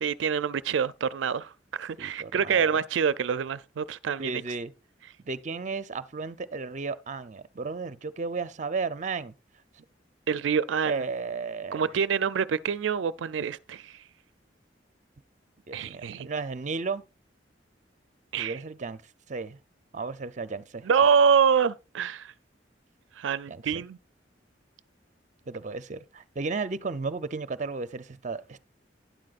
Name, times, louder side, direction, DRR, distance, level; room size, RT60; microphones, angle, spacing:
voice 1, 0.0-4.4 10.3-11.0 11.7-14.0 15.7-16.3 18.3-18.6 20.8-22.3 23.2-24.0, right 6 dB, 85° right, 0.4 m, -26 dB
voice 2, 2.0-2.8 4.2-4.7 5.3-9.3 10.8-11.9 15.7-17.0 18.3-19.0 19.3-19.6 19.9-20.9 23.5-23.8 25.5-28.6, right 4 dB, 40° right, 0.6 m, -34 dB
11.5 x 10.5 x 2.4 m
head